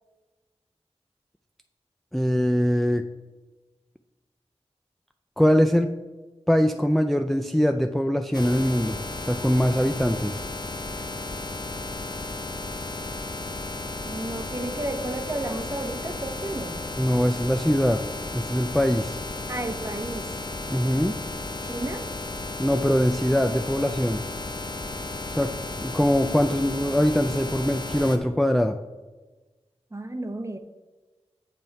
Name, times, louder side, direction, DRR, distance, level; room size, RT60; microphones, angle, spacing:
voice 1, 2.1-3.1 5.4-5.9 6.5-9.0 9.3-10.4 17.0-18.0 18.3-19.2 20.7-21.2 22.6-24.2 25.3-25.5 25.8-28.8, equal, ahead, 6 dB, 0.3 m, -22 dB
sound 1, 8.3-28.2, left 2 dB, 40° left, 0.7 m, -34 dB
voice 2, 14.0-16.8 19.5-20.3 21.6-22.1 29.9-30.6, right 1 dB, 25° right, 6 dB, 0.9 m, -32 dB
7.3 x 5.5 x 4.6 m, 1.2 s
cardioid pair, 50°, 11 cm